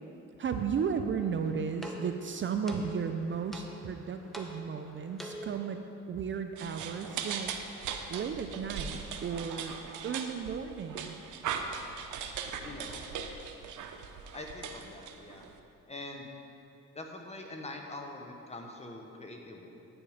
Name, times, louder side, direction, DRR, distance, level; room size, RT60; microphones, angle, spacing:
voice 1, 0.4-5.8 6.1-7.5 8.1-9.8 10.0-11.2, right 6 dB, 40° right, 7 dB, 0.5 m, -34 dB
sound 1, 1.2-5.8, right 1 dB, ahead, 1.1 m, -46 dB
sound 2, 6.6-15.6, right 6 dB, 80° right, 0.7 m, -39 dB
voice 2, 12.6-13.0 14.3-15.5 15.9-16.3 16.9-19.7, left 2 dB, 20° left, 2 dB, 1.2 m, -44 dB
9.7 x 7.1 x 5.0 m, 2.6 s
cardioid pair, 90°, 30 cm